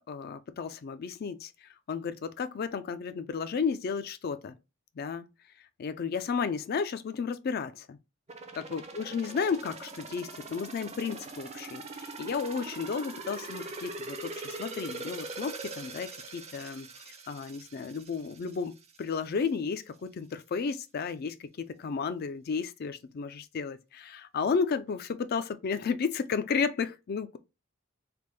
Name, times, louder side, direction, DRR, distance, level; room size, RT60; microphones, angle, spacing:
voice 1, 0.1-1.5 1.9-4.6 5.0-5.3 5.8-8.0 8.6-18.7 19.0-27.4, left 5 dB, 45° left, 0.3 m, -33 dB
sound 1, 8.3-19.0 19.4-19.5, right 3 dB, 30° right, 0.5 m, -42 dB
3.4 x 2.2 x 3.1 m
head